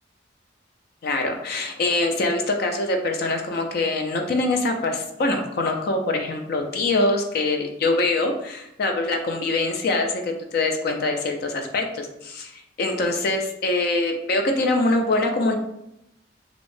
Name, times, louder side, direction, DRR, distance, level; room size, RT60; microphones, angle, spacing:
voice 1, 1.0-15.5, left 2 dB, 55° left, 4 dB, 0.3 m, -24 dB
2.5 x 2.0 x 3.1 m, 0.82 s
head